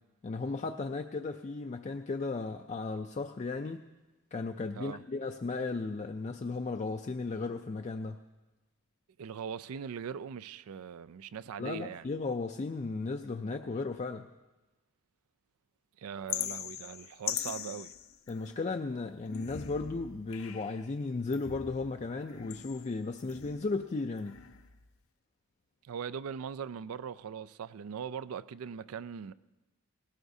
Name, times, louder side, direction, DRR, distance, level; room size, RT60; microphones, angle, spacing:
voice 1, 0.2-3.8 4.3-8.2 11.6-14.3 18.3-24.4, left 3 dB, 30° left, 0.4 m, -35 dB
voice 2, 9.2-12.0 16.0-17.9 25.8-29.3, right 7 dB, 75° right, 0.4 m, -40 dB
sound 1, 16.3-18.7 19.2-20.9 21.3-23.8 24.2-24.9, left 10 dB, 65° left, 0.7 m, -41 dB
19.0 x 17.5 x 2.7 m
head